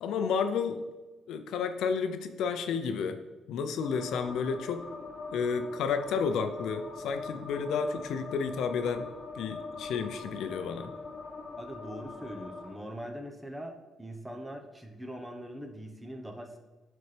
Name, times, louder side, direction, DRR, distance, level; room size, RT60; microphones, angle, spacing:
voice 1, 0.0-0.8 1.3-3.2 3.5-4.9 5.3-9.1 9.4-10.9, left 6 dB, 80° left, 8 dB, 0.5 m, -31 dB
sound 1, 3.8-12.7, left 3 dB, 45° left, 1.2 m, -42 dB
voice 2, 11.6-16.6, equal, 10° right, 4 dB, 0.9 m, -42 dB
10.0 x 4.2 x 3.3 m, 1.2 s
cardioid pair, 90°, 0 cm